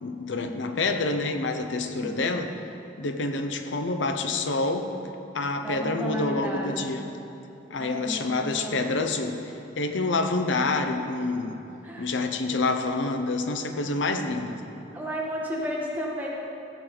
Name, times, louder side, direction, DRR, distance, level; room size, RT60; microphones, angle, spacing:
voice 1, 0.0-2.5 3.0-4.9 5.3-7.1 7.7-11.6 12.0-14.6, left 3 dB, 90° left, 6 dB, 0.8 m, -27 dB
voice 2, 5.6-6.9 7.8-8.8 11.8-12.1 14.9-16.3, equal, 10° right, -4 dB, 1.5 m, -33 dB
15.0 x 8.0 x 3.9 m, 2.9 s
head